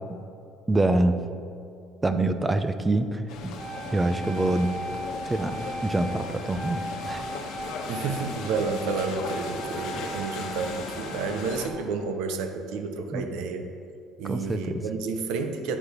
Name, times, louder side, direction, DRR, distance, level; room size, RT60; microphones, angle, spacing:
voice 1, 0.7-1.2 2.0-3.6 3.9-4.8 5.2-7.2 13.1-13.3 14.2-14.8, right 2 dB, 15° right, 10 dB, 0.5 m, -25 dB
sound 1, 3.3-11.7, left 4 dB, 75° left, 1.0 m, -37 dB
Wind instrument woodwind instrument, 3.6-11.8, right 1 dB, 55° right, 1.8 m, -38 dB
voice 2, 7.9-13.6 14.2-15.8, right 4 dB, 80° right, 7 dB, 0.7 m, -30 dB
9.9 x 4.5 x 5.1 m, 2.5 s
cardioid pair, 110°, 0 cm